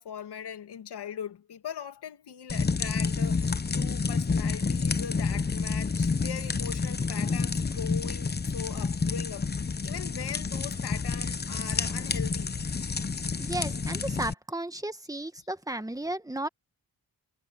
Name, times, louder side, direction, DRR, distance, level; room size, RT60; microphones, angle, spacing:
voice 1, 0.0-12.5, left 8 dB, 85° left, 2.6 m, -40 dB
sound 1, 2.5-14.3, left 4 dB, 25° left, 0.9 m, -29 dB
voice 2, 13.4-16.5, right 1 dB, 10° right, 1.6 m, -34 dB
cardioid pair, 90°, 39 cm